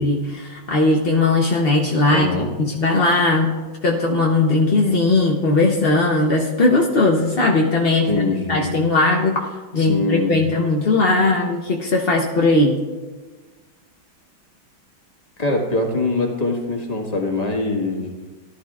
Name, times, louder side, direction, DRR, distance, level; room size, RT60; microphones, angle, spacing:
voice 1, 0.0-2.3 2.6-3.5 3.8-9.5 9.7-12.7, left 2 dB, 50° left, -1 dB, 0.7 m, -18 dB
voice 2, 2.1-2.5 8.1-8.7 9.8-10.4 15.4-18.1, left 2 dB, 20° left, 0 dB, 1.5 m, -23 dB
18.0 x 12.0 x 2.4 m, 1.3 s
omnidirectional pair, 2.3 m